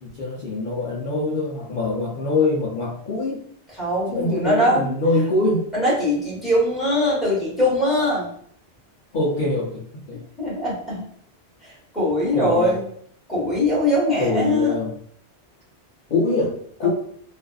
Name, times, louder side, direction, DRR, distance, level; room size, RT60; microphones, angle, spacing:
voice 1, 0.0-3.5 4.1-5.7 9.1-10.2 12.3-12.8 14.2-14.9 16.1-16.9, left 2 dB, 55° left, -6 dB, 0.7 m, -24 dB
voice 2, 3.8-4.9 5.7-8.3 10.4-11.0 11.6-12.8 13.3-14.7 16.8-16.9, left 1 dB, ahead, -7 dB, 1.1 m, -21 dB
2.5 x 2.3 x 2.3 m, 0.62 s
omnidirectional pair, 1.1 m